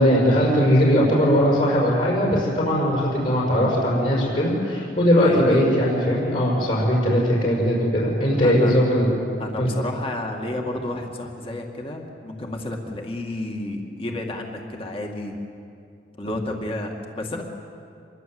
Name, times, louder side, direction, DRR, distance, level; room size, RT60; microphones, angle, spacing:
voice 1, 0.0-9.1 9.6-9.7, equal, 50° left, -5 dB, 6.0 m, -19 dB
voice 2, 5.2-5.6 8.4-8.8 9.4-15.3 16.2-17.4, left 1 dB, 30° left, 1 dB, 2.3 m, -31 dB
26.0 x 22.5 x 8.0 m, 2.5 s
head